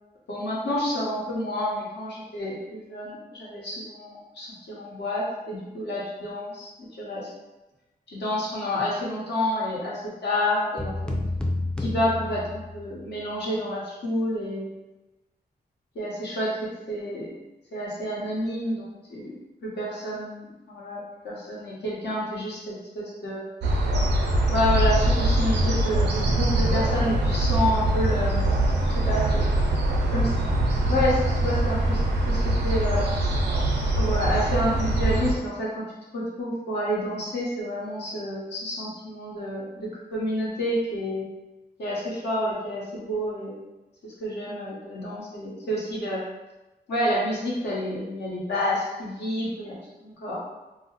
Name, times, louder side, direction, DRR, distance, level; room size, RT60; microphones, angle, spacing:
voice 1, 0.3-6.7 7.0-7.3 8.1-11.1 11.8-14.7 15.9-17.3 17.7-19.3 19.6-23.5 24.5-28.5 28.9-29.5 30.1-30.3 30.9-33.2 34.0-35.8 36.1-41.3 41.8-43.6 44.0-46.2 46.9-50.4, left 1 dB, 85° left, -6 dB, 1.0 m, -29 dB
sound 1, 10.8-13.0, left 2 dB, 5° left, 0.3 m, -30 dB
sound 2, 23.6-35.3, right 1 dB, 85° right, 0.5 m, -23 dB
2.4 x 2.0 x 3.8 m, 1.0 s
wide cardioid pair, 105°, 17 cm